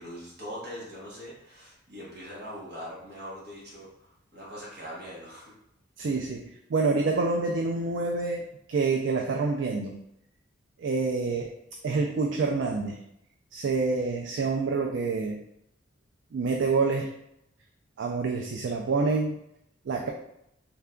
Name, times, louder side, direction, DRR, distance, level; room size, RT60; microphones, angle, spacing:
voice 1, 0.0-5.5, equal, 50° right, -6 dB, 1.0 m, -42 dB
voice 2, 6.0-6.4 6.7-10.0 10.8-11.5 11.8-13.0 13.5-15.4 16.3-17.1 18.0-19.4 19.9-20.1, right 4 dB, 65° right, 2 dB, 0.3 m, -27 dB
3.3 x 2.2 x 3.6 m, 0.78 s
head